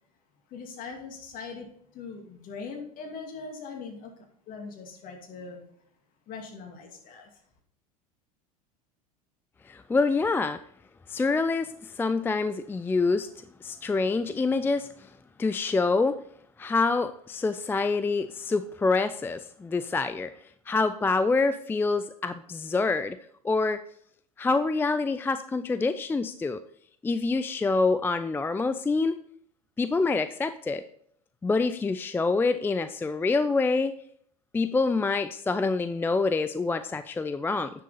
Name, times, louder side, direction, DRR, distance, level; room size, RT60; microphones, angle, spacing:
voice 1, 0.5-4.1 4.5-5.6 6.3-7.4, left 4 dB, 45° left, 3 dB, 2.4 m, -41 dB
voice 2, 9.7-10.6 11.1-13.3 13.6-15.1 15.4-16.2 16.6-20.3 20.7-23.2 23.4-23.8 24.4-26.6 27.0-29.2 29.8-30.8 31.4-33.9 34.5-37.7, left 3 dB, 10° left, 12 dB, 0.4 m, -26 dB
9.9 x 6.6 x 4.1 m, 0.64 s
hypercardioid pair, 80°, 19 cm